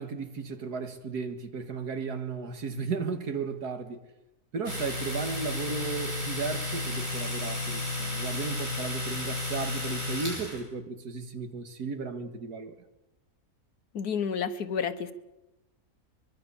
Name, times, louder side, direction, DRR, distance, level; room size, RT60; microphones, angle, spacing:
voice 1, 0.0-4.0 4.5-12.8, right 5 dB, 90° right, 2.3 m, -35 dB
Domestic sounds home sounds, 4.6-10.6, left 2 dB, 55° right, 8.3 m, -33 dB
voice 2, 13.9-15.1, left 6 dB, 80° left, 1.8 m, -30 dB
23.5 x 22.5 x 7.1 m
omnidirectional pair, 1.6 m